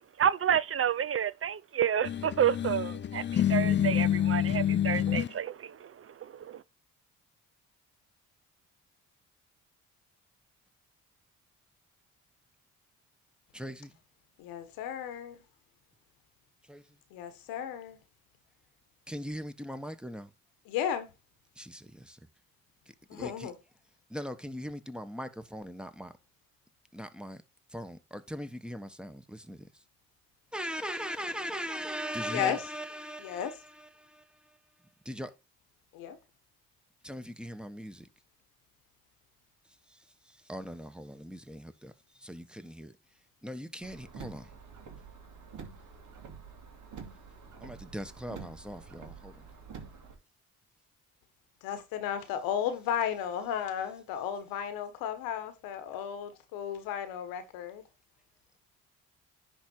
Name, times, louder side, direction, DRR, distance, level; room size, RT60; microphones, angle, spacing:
voice 1, 0.0-5.9 6.2-6.6, right 9 dB, 40° right, 0.5 m, -30 dB
sound 1, 2.0-5.3, left 10 dB, 35° left, 0.5 m, -27 dB
voice 2, 13.5-13.9 16.7-16.8 19.1-20.3 21.6-22.2 23.1-23.5 24.1-26.1 26.9-27.4 27.7-29.7 30.5-34.2 35.0-35.3 37.0-38.1 39.9-40.0 40.3-41.9 42.2-42.9 43.4-44.5 47.6-49.5, equal, 5° right, 1.2 m, -40 dB
voice 3, 14.4-15.4 17.1-18.0 20.7-21.1 23.1-23.6 32.3-32.6 33.2-33.6 35.9-36.2 51.6-57.8, left 9 dB, 90° left, 1.3 m, -34 dB
Car, 43.8-50.1, right 5 dB, 60° right, 2.4 m, -48 dB
10.5 x 3.6 x 4.5 m
supercardioid pair, 55°, 34 cm